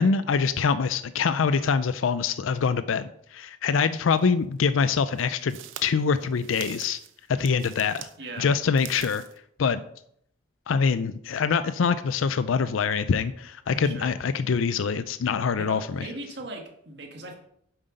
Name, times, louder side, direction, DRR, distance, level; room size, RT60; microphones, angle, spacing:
voice 1, 0.0-7.0 7.3-8.1 8.4-9.2 9.6-9.8 10.7-16.1, left 5 dB, 85° left, 13 dB, 0.4 m, -24 dB
sound 1, 4.2-4.3 5.1-8.2 8.6-9.4, right 10 dB, 85° right, 0.8 m, -43 dB
voice 2, 8.2-8.5 13.7-14.1 14.7-14.8 15.6-17.4, right 1 dB, 55° right, 2 dB, 1.8 m, -39 dB
7.9 x 7.7 x 5.2 m, 0.71 s
head